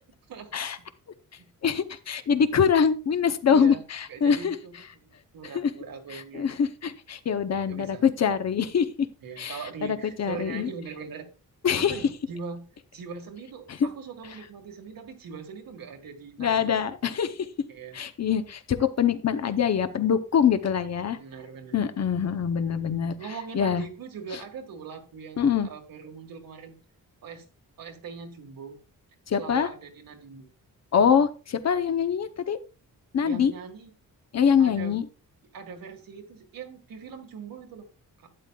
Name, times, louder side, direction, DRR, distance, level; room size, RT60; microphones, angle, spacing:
voice 1, 1.6-4.5 5.5-5.7 6.1-8.9 9.4-10.7 11.6-12.0 13.8-13.9 16.4-17.5 17.9-21.2 21.7-23.2 23.5-23.8 25.4-25.7 29.3-29.7 30.9-32.6 33.1-33.5 34.3-35.1, left 7 dB, 50° left, 10 dB, 0.8 m, -24 dB
voice 2, 3.5-3.8 4.1-6.5 7.6-8.1 9.2-11.3 11.8-12.6 12.9-16.7 17.7-18.0 21.1-21.8 23.2-26.8 27.2-27.5 27.8-28.8 29.4-30.5 33.2-33.9 34.6-35.0 35.5-37.9 38.2-38.3, right 5 dB, 75° right, 5 dB, 1.8 m, -41 dB
12.0 x 9.2 x 2.3 m, 0.33 s
wide cardioid pair, 140°, 35 cm